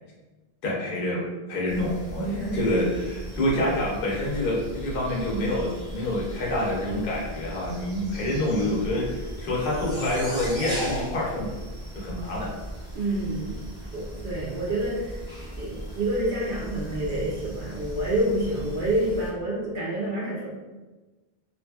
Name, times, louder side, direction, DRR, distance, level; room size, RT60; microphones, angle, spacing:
voice 1, 0.6-1.2 1.5-11.5 11.9-12.5, left 1 dB, 60° left, -4 dB, 0.9 m, -27 dB
sound 1, 1.7-19.3, equal, 5° right, 0.8 m, -37 dB
voice 2, 2.2-2.7 12.9-13.6 13.9-20.5, right 1 dB, 60° right, -5 dB, 0.7 m, -28 dB
2.6 x 2.5 x 2.3 m, 1.2 s
omnidirectional pair, 1.0 m